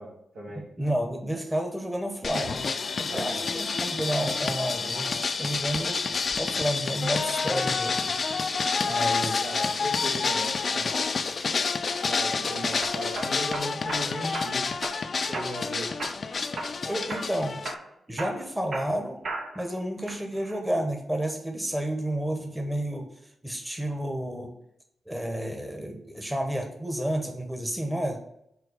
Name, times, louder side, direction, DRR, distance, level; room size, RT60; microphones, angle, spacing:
voice 1, 0.0-0.9 3.1-3.5 6.4-6.6 8.8-10.9 12.1-14.6 15.3-16.0, right 1 dB, 80° right, -5 dB, 2.4 m, -37 dB
voice 2, 0.8-2.7 3.0-5.1 5.4-6.0 6.4-8.1 8.9-9.4 16.8-17.6 18.1-19.2 19.5-23.1 23.4-24.5 25.1-28.2, right 1 dB, 10° right, 3 dB, 1.0 m, -30 dB
sound 1, 2.2-17.7, left 4 dB, 55° left, 0.4 m, -29 dB
sound 2, 11.9-12.3 12.8-14.0 14.3-15.0 15.3-15.7 16.0-16.8 17.1-17.3 17.6-19.7 20.1-20.6, right 2 dB, 65° right, 0.9 m, -36 dB
4.7 x 4.2 x 4.9 m, 0.78 s
cardioid pair, 60°, 0 cm